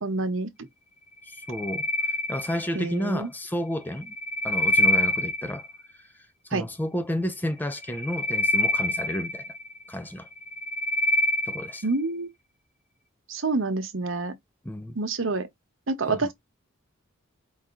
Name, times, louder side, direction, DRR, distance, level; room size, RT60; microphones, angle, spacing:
voice 1, 0.0-0.5 2.7-3.3 6.5-6.6 11.8-12.3 13.3-14.3 15.0-15.5 15.9-16.3, right 3 dB, 65° right, 1.0 m, -27 dB
voice 2, 1.2-4.1 4.4-5.7 5.9-9.6 9.9-10.3 11.5-11.9 14.6-15.0 16.0-16.3, equal, 10° left, 0.4 m, -32 dB
sound 1, 1.3-3.0 3.9-5.7 7.7-9.8 10.3-11.8, left 1 dB, 35° left, 0.9 m, -26 dB
4.9 x 2.7 x 3.5 m
head